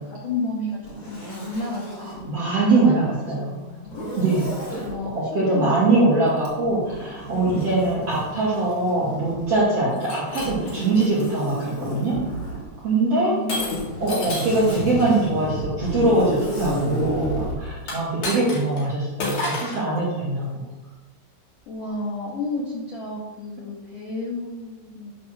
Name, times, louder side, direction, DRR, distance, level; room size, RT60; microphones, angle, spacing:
voice 1, 0.0-4.0 4.5-6.0 13.1-13.9 21.7-25.1, left 2 dB, 70° left, -4 dB, 1.9 m, -32 dB
Zipper (clothing), 0.8-2.2 3.8-4.9 6.4-9.6 10.4-12.6 13.6-17.6, right 1 dB, 20° left, 2.6 m, -32 dB
voice 2, 2.3-3.5 4.2-4.8 5.1-12.2 12.8-13.4 14.0-20.6, right 2 dB, 45° right, -8 dB, 2.3 m, -22 dB
Shatter, 9.9-11.3 12.0-12.3 13.5-14.7 17.8-18.8 19.2-19.8, left 2 dB, 50° left, 2.8 m, -30 dB
9.7 x 4.4 x 6.2 m, 1.1 s
omnidirectional pair, 5.8 m